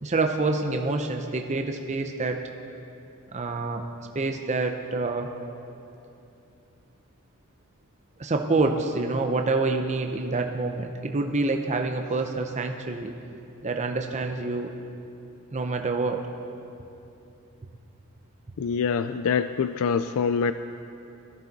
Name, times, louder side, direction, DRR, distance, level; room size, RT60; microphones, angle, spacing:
voice 1, 0.0-2.4 3.3-3.9 4.1-5.3 8.2-13.1 13.6-14.7 15.5-16.2, right 3 dB, 30° right, 4 dB, 0.6 m, -27 dB
voice 2, 18.6-20.5, left 6 dB, 70° left, 11 dB, 0.4 m, -25 dB
17.5 x 13.5 x 4.1 m, 2.8 s
head